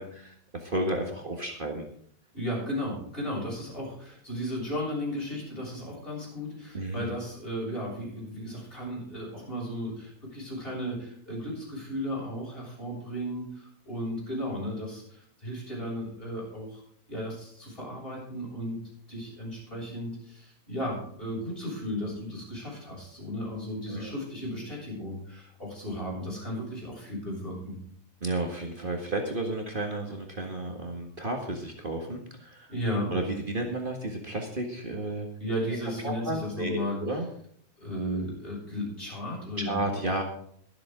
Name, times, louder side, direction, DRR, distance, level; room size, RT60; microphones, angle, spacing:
voice 1, 0.0-1.9 6.7-7.1 23.9-24.1 28.2-32.7 33.1-35.3 36.0-37.3 39.6-40.2, right 2 dB, 40° right, 2 dB, 1.9 m, -32 dB
voice 2, 2.3-16.8 17.1-18.8 19.1-27.8 32.7-33.1 35.4-37.0 37.8-40.0, equal, 40° left, -4 dB, 7.4 m, -35 dB
23.0 x 7.8 x 3.8 m, 0.63 s
omnidirectional pair, 1.5 m